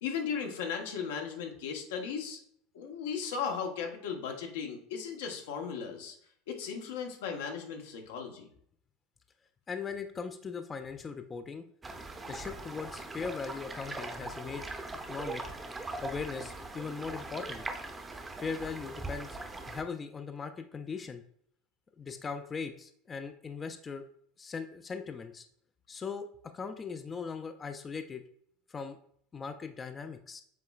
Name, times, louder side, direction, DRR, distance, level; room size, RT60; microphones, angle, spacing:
voice 1, 0.0-2.4 2.7-6.1 6.5-8.5, left 6 dB, 90° left, 3 dB, 1.0 m, -36 dB
voice 2, 9.7-11.6 12.3-14.7 15.1-15.4 16.0-17.6 18.4-19.4 19.7-21.2 22.0-24.1 24.4-25.5 25.9-28.2 28.7-29.0 29.3-30.4, left 5 dB, 25° left, 8 dB, 0.3 m, -39 dB
sound 1, 11.8-19.8, right 2 dB, 15° right, 0.6 m, -41 dB
7.4 x 3.1 x 2.3 m, 0.66 s
supercardioid pair, 110°, 0 cm